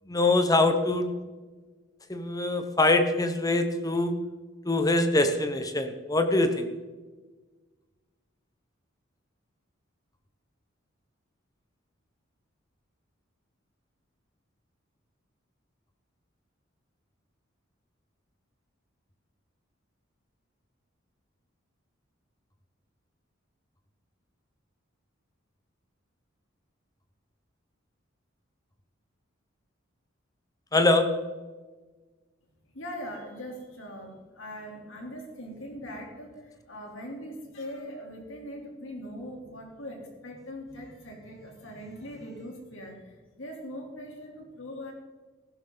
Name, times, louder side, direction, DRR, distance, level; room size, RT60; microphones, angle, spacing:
voice 1, 0.1-1.1 2.1-4.1 4.6-6.7 30.7-31.1, left 2 dB, 20° left, 8 dB, 1.0 m, -23 dB
voice 2, 32.7-44.9, equal, 75° left, 1 dB, 3.5 m, -41 dB
15.5 x 12.0 x 4.0 m, 1.3 s
head